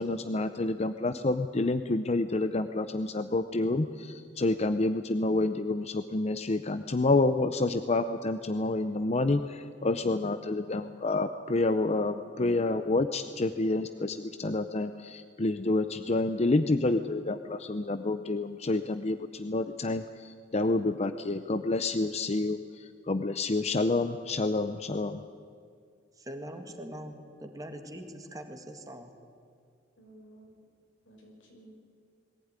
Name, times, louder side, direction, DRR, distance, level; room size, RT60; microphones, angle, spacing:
voice 1, 0.0-25.2, left 2 dB, 35° left, 10 dB, 0.6 m, -28 dB
voice 2, 26.3-29.1, equal, 20° right, 5 dB, 1.9 m, -42 dB
voice 3, 30.0-30.5 31.0-31.7, right 1 dB, 90° left, 0 dB, 6.0 m, -54 dB
21.5 x 15.5 x 9.7 m, 2.2 s
head